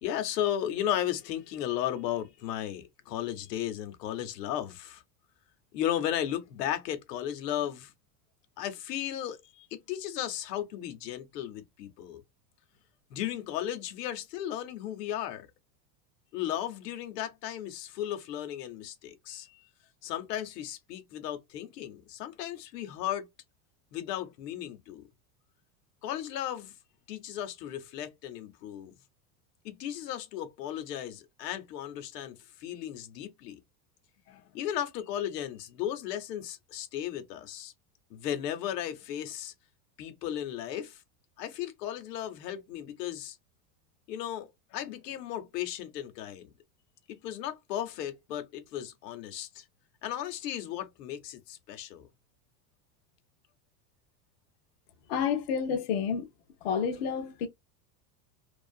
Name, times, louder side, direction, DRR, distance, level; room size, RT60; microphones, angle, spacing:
voice 1, 0.0-5.0 5.7-7.9 8.6-12.2 13.1-15.5 16.3-19.6 20.0-23.3 23.9-25.1 26.0-26.7 27.1-28.9 29.6-33.6 34.3-37.7 38.1-39.5 40.0-41.0 41.4-43.4 44.1-46.5 47.1-49.6 50.0-52.1, left 11 dB, 90° left, 0.8 m, -35 dB
voice 2, 55.1-56.3 56.6-57.5, left 7 dB, 45° left, 0.4 m, -29 dB
2.6 x 2.4 x 2.2 m
supercardioid pair, 175°, 47 cm